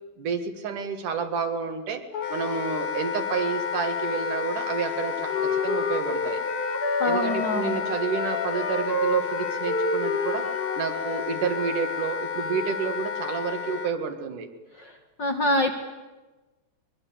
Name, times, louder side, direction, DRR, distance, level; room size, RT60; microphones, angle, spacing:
voice 1, 0.2-2.0 2.3-6.4 6.9-10.5 10.8-14.5, right 6 dB, 75° right, 6 dB, 3.3 m, -30 dB
Wind instrument woodwind instrument, 2.1-13.9, left 7 dB, 80° left, 2.8 m, -31 dB
Wind instrument woodwind instrument 2, 4.9-11.3, left 2 dB, 20° left, 1.9 m, -29 dB
voice 2, 7.0-7.8 15.2-15.7, left 1 dB, 40° left, 3 dB, 1.9 m, -25 dB
23.0 x 22.0 x 8.7 m, 1.2 s
omnidirectional pair, 3.7 m